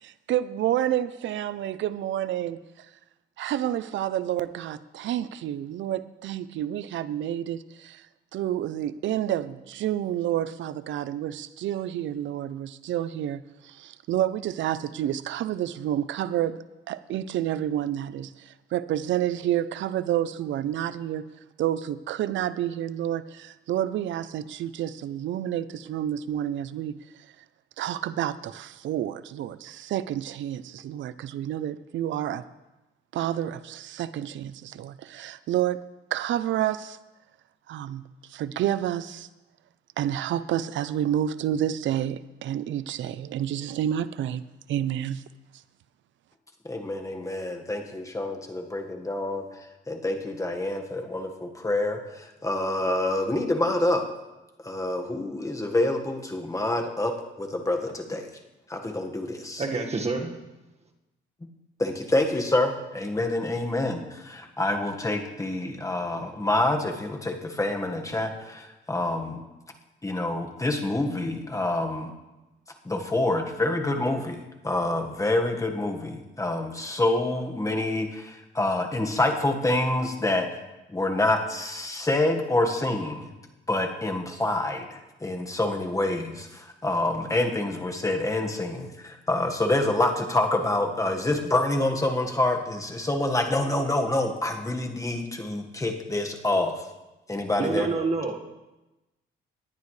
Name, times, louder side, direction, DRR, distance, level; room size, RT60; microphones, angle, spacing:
voice 1, 0.0-2.9 3.4-8.1 8.3-16.6 16.9-21.3 21.6-27.0 27.8-32.4 33.1-35.8 36.1-37.0 37.7-38.0 38.3-39.3 40.0-44.4 44.7-45.2, right 11 dB, 70° right, 15 dB, 0.6 m, -29 dB
voice 2, 46.6-49.4 49.9-54.0 54.6-58.3 58.7-59.6 61.8-69.4 70.0-72.1 72.8-80.5 80.9-83.3 83.7-96.7 97.3-97.9, left 2 dB, 15° left, 3 dB, 1.6 m, -27 dB
voice 3, 59.6-60.4 97.6-98.5, right 3 dB, 30° right, 3 dB, 1.6 m, -28 dB
19.0 x 10.5 x 3.3 m, 1.0 s
cardioid pair, 90°, 20 cm